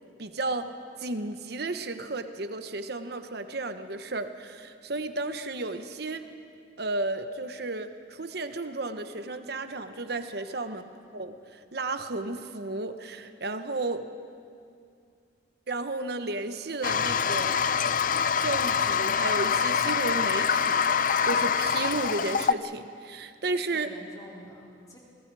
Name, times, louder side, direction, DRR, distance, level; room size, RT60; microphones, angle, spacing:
voice 1, 0.2-0.7 1.0-6.2 6.8-10.8 11.1-14.1 15.7-17.6 18.4-23.9, right 2 dB, 60° right, 9 dB, 1.1 m, -33 dB
voice 2, 10.3-10.7 23.4-25.0, equal, 20° left, -4 dB, 4.3 m, -48 dB
Toilet flush, 16.8-22.5, left 7 dB, 45° left, 0.5 m, -25 dB
30.0 x 21.5 x 4.8 m, 2.3 s
head